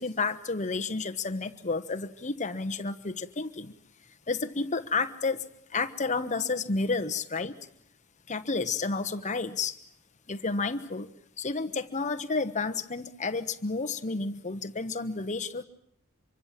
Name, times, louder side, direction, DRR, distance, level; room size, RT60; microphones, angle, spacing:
voice 1, 0.0-3.7 4.3-7.6 8.3-9.8 10.3-11.1 11.4-15.6, left 3 dB, 35° left, 8 dB, 1.2 m, -31 dB
26.0 x 24.0 x 7.5 m, 0.71 s
head